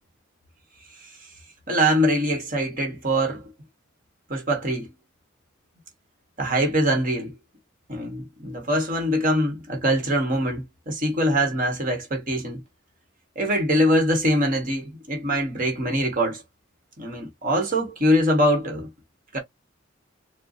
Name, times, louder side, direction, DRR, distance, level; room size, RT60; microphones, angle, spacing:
voice 1, 1.7-3.5 4.3-4.9 6.4-7.3 7.9-12.6 13.3-16.4 17.0-18.9 19.3-19.4, equal, 45° right, 1.4 m, -23 dB
4.5 x 2.3 x 2.6 m
head